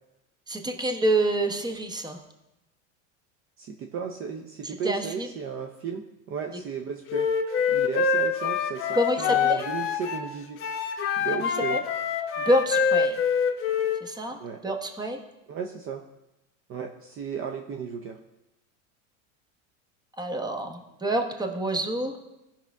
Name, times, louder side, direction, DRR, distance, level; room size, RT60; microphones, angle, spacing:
voice 1, 0.5-2.2 4.6-5.3 8.9-9.7 11.3-11.8 12.4-13.2 14.0-15.2 20.2-22.1, right 1 dB, 10° right, 5 dB, 1.0 m, -27 dB
voice 2, 3.6-7.3 7.7-10.7 11.2-11.8 14.4-14.6 15.5-16.0 16.7-18.2, right 6 dB, 35° right, 5 dB, 0.7 m, -35 dB
Wind instrument woodwind instrument, 7.1-10.3 10.6-14.0, left 6 dB, 35° left, 1.0 m, -25 dB
16.0 x 5.8 x 3.5 m, 0.94 s
supercardioid pair, 125°, 38 cm